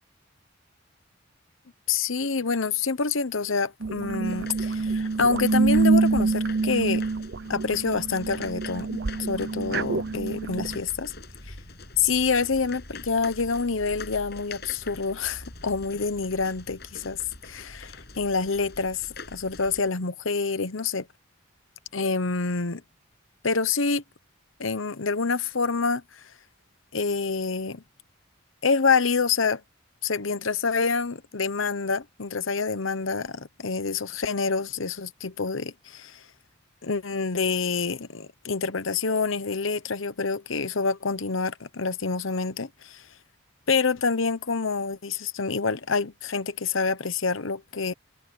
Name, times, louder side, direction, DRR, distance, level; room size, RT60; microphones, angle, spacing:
voice 1, 1.9-7.0 7.5-11.1 11.5-11.6 12.0-17.2 17.4-21.1 21.9-22.8 23.4-24.0 24.6-26.2 26.9-27.8 28.6-29.6 30.0-36.2 36.8-43.0 43.7-47.9, left 4 dB, 80° left, 1.0 m, -27 dB
sound 1, 3.8-10.8, right 4 dB, 55° right, 0.7 m, -26 dB
sound 2, 4.2-19.9, left 3 dB, 50° left, 7.6 m, -44 dB
head